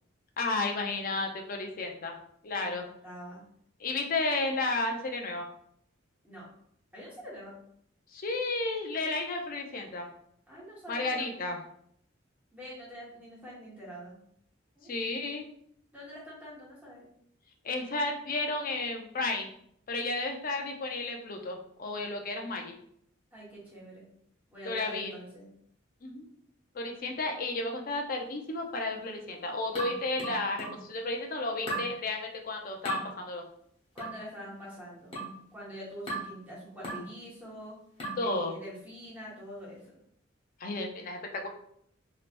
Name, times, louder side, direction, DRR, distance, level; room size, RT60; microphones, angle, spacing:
voice 1, 0.4-2.2 2.4-2.9 3.8-5.5 8.1-10.1 10.9-11.6 14.8-15.5 17.6-19.5 19.9-22.8 24.6-25.1 26.0-26.2 26.7-33.5 38.2-38.6 40.6-41.5, left 2 dB, 45° left, 3 dB, 0.5 m, -32 dB
voice 2, 2.6-3.4 6.2-6.5 6.9-7.6 10.5-11.3 12.5-14.2 14.8-15.0 15.9-17.1 23.3-24.1 24.5-25.5 33.9-35.1 35.5-37.8 38.2-40.0, equal, 10° right, -7 dB, 1.3 m, -45 dB
sound 1, 29.8-30.9 31.7-32.0 32.9-33.1 34.0-34.2 35.1-35.4 36.1-36.4 36.8-37.1 38.0-38.3, right 2 dB, 30° left, 0.9 m, -36 dB
3.2 x 2.8 x 2.5 m, 0.68 s
head